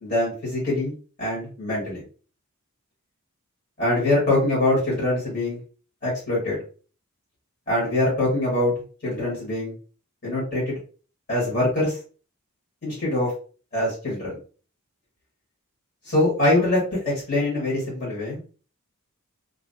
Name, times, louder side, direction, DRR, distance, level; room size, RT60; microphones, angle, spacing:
voice 1, 0.0-0.9 1.2-2.0 3.8-5.6 6.0-6.6 7.7-8.7 9.0-9.7 10.2-10.8 11.3-12.0 12.8-13.3 13.7-14.4 16.0-18.4, left 1 dB, 45° left, -5 dB, 1.5 m, -23 dB
2.8 x 2.5 x 2.7 m, 0.39 s
head